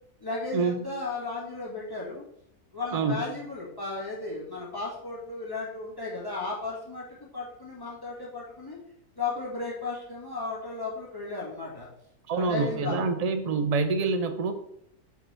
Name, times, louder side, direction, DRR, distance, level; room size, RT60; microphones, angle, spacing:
voice 1, 0.2-2.3 2.7-8.8 9.2-11.9 12.3-13.1, left 3 dB, 15° left, -4 dB, 2.1 m, -35 dB
voice 2, 2.9-3.2 12.3-14.5, right 4 dB, 35° right, 8 dB, 0.6 m, -26 dB
5.2 x 5.1 x 6.2 m, 0.74 s
omnidirectional pair, 1.6 m